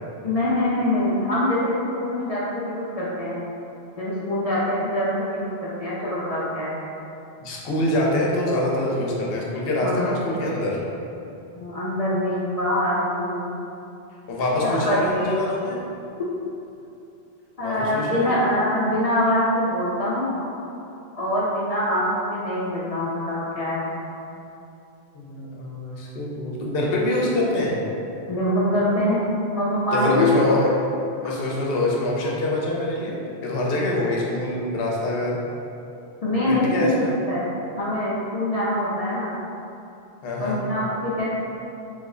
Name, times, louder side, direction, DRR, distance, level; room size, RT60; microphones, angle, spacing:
voice 1, 0.2-3.4 4.0-6.8 9.8-10.1 11.5-13.6 14.6-15.3 17.6-20.4 21.2-23.9 28.3-29.2 29.5-30.3 36.2-37.4 37.8-39.4 40.4-41.3, left 1 dB, 50° left, -8 dB, 0.4 m, -24 dB
voice 2, 7.4-10.8 14.3-15.8 17.6-18.5 25.1-27.8 29.9-30.7 31.2-33.2 33.4-35.4 36.5-37.1 40.2-40.6, left 1 dB, 65° left, -3 dB, 0.8 m, -25 dB
3.2 x 2.1 x 3.6 m, 2.8 s
omnidirectional pair, 1.1 m